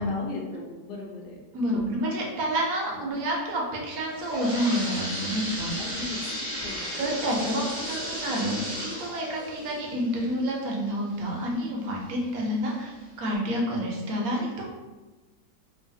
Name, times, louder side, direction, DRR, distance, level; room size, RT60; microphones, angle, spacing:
voice 1, 0.0-1.4 1.7-1.9 5.8-6.3 6.6-6.9, left 2 dB, 80° left, -1 dB, 1.3 m, -37 dB
voice 2, 1.5-5.7 7.0-12.9 13.2-14.7, equal, 65° right, -2 dB, 1.0 m, -29 dB
sound 1, 3.9-11.5 12.0-12.1 12.8-12.9 13.3-13.4, equal, 20° left, 1.2 m, -35 dB
3.1 x 2.5 x 2.6 m, 1.2 s
omnidirectional pair, 1.9 m